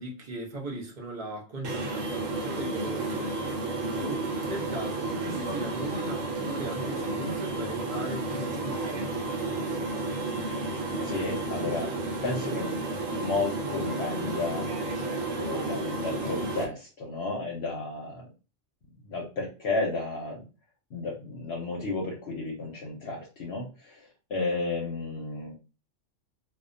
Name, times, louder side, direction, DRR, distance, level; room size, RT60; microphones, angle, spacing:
voice 1, 0.0-3.5 4.0-9.1, right 1 dB, 45° right, 0.7 m, -38 dB
sound 1, 1.6-16.6, right 2 dB, 80° right, 1.0 m, -32 dB
voice 2, 11.0-12.8 13.1-14.7 15.3-18.3 19.0-20.4 20.9-25.5, left 3 dB, 60° left, 0.8 m, -33 dB
2.3 x 2.1 x 2.5 m
omnidirectional pair, 1.3 m